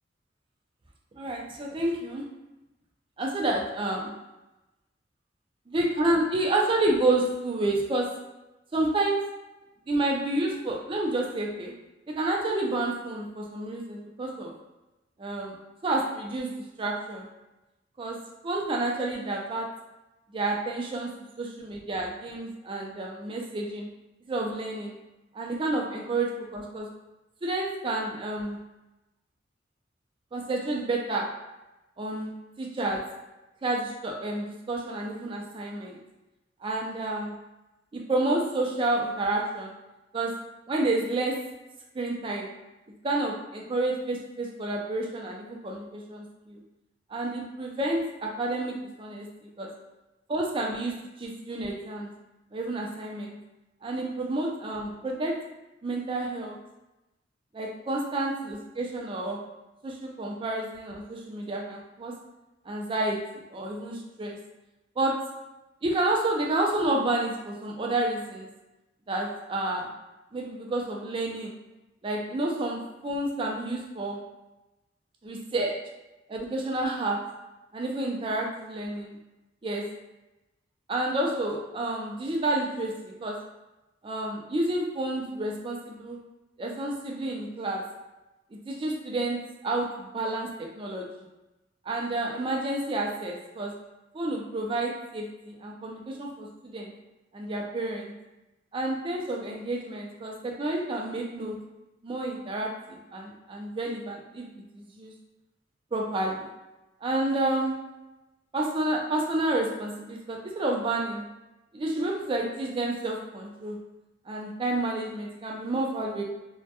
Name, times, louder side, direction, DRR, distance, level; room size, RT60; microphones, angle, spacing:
voice 1, 1.1-2.2 3.2-4.1 5.7-8.1 8.7-9.2 9.9-11.7 12.1-14.5 15.2-15.6 15.8-17.3 18.0-18.2 18.4-19.7 20.3-21.1 21.4-23.9 24.3-25.0 25.3-26.9 27.4-28.6 30.3-31.3 32.0-33.0 33.6-36.0 36.6-37.3 37.9-39.7 40.1-40.3 40.7-41.4 41.9-42.5 43.0-46.6 47.1-49.7 50.3-52.1 52.5-53.4 53.8-55.3 55.8-56.6 57.5-59.4 59.8-62.1 62.7-63.2 63.5-64.4 65.0-65.1 65.8-68.5 69.1-69.9 70.3-71.6 72.0-74.2 75.2-75.7 76.3-77.2 77.7-79.2 79.6-79.8 80.9-83.4 84.0-86.2 86.6-87.8 88.7-91.1 91.8-93.7 94.1-96.9 97.3-98.1 98.7-101.6 102.0-104.5 104.7-105.1 105.9-106.5 107.0-107.7 108.5-111.3 111.7-113.8 114.3-116.2, right 2 dB, 30° right, -1 dB, 0.4 m, -30 dB
2.1 x 2.1 x 2.7 m, 1.0 s
head